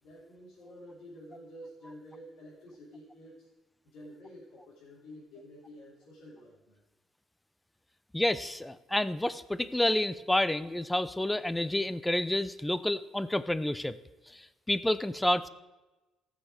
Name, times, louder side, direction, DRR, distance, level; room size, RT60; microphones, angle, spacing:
voice 1, 0.0-3.5 3.8-6.8, equal, 85° left, -7 dB, 3.5 m, -50 dB
voice 2, 8.1-14.0 14.3-15.5, left 1 dB, 5° left, 15 dB, 0.4 m, -29 dB
17.5 x 6.6 x 4.9 m, 1.1 s
cardioid pair, 145°, 0 cm